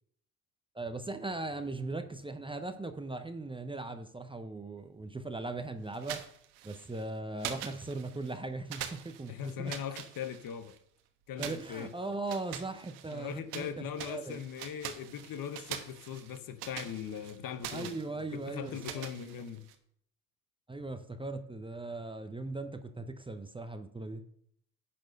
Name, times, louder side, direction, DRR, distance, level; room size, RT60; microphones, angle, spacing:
voice 1, 0.7-6.2 6.6-9.7 11.4-14.4 17.7-19.0 20.7-24.2, right 2 dB, 10° right, 0.8 m, -39 dB
sound 1, 5.9-7.0 7.4-8.4 8.7-10.8 11.4-13.7 14.0-19.8, right 11 dB, 75° right, 1.2 m, -44 dB
voice 2, 9.3-10.8 11.3-11.9 13.1-17.9 18.3-19.6, left 8 dB, 50° left, 1.0 m, -40 dB
10.5 x 4.3 x 6.5 m
hypercardioid pair, 65°, 44 cm